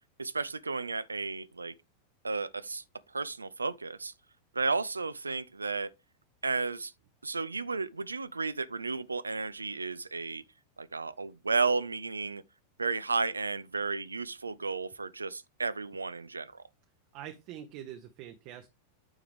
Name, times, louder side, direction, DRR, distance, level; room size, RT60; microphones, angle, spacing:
voice 1, 0.2-1.7 2.2-2.8 3.1-4.1 4.5-5.9 6.4-6.9 7.2-10.4 10.8-12.4 12.8-16.6, right 4 dB, 80° right, 0.3 m, -33 dB
voice 2, 17.1-18.7, right 11 dB, 40° right, 0.7 m, -44 dB
8.7 x 4.9 x 3.4 m
figure-of-eight pair, 90°, 0 cm